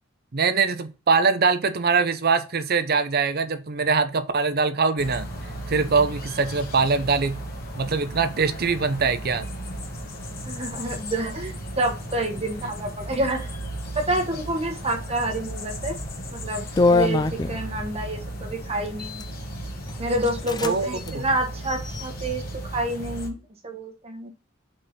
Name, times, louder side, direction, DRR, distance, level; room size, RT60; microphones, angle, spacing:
voice 1, 0.3-5.3 5.7-7.4 7.7-9.5 12.6-12.7 20.6-21.3, right 4 dB, 50° right, 0.7 m, -23 dB
sound 1, 5.0-23.3, right 1 dB, 50° left, 1.4 m, -35 dB
voice 2, 10.4-13.5 13.9-16.0 16.3-19.3 20.0-24.3, right 1 dB, 30° right, 1.2 m, -28 dB
sound 2, 15.9-16.2 16.8-17.9 18.9-19.3 19.9-20.0 20.2-20.7 21.0-21.1 21.6-22.3, left 3 dB, 20° left, 0.4 m, -24 dB
5.2 x 4.3 x 5.0 m
head